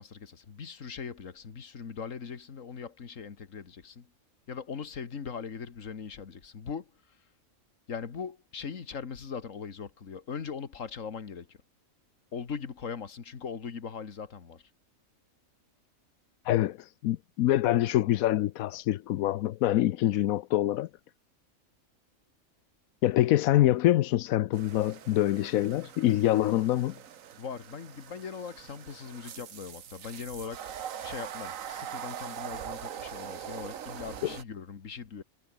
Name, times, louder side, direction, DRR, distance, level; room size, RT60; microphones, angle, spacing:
voice 1, 0.0-4.1 4.5-7.2 7.9-11.6 12.3-14.6 27.4-30.7 31.0-35.2, left 6 dB, 65° left, 2.0 m, -40 dB
voice 2, 16.4-20.9 23.0-26.9, left 14 dB, 85° left, 1.1 m, -25 dB
sound 1, 24.5-34.4, right 9 dB, 70° right, 1.4 m, -42 dB
omnidirectional pair, 1.4 m